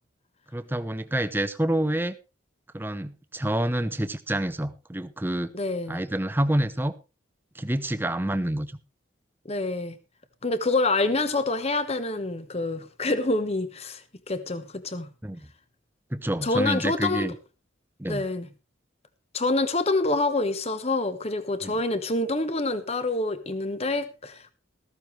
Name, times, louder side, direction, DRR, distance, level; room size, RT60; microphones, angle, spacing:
voice 1, 0.5-2.2 2.7-5.5 5.9-6.9 7.5-8.7 15.2-15.4 16.1-17.3 18.0-18.3 21.6-21.8, right 1 dB, 10° right, 0.7 m, -27 dB
voice 2, 5.5-6.0 9.5-10.0 10.4-15.1 16.4-17.3 18.1-18.5 19.3-24.5, left 2 dB, 30° left, 1.1 m, -27 dB
14.0 x 14.0 x 3.3 m
head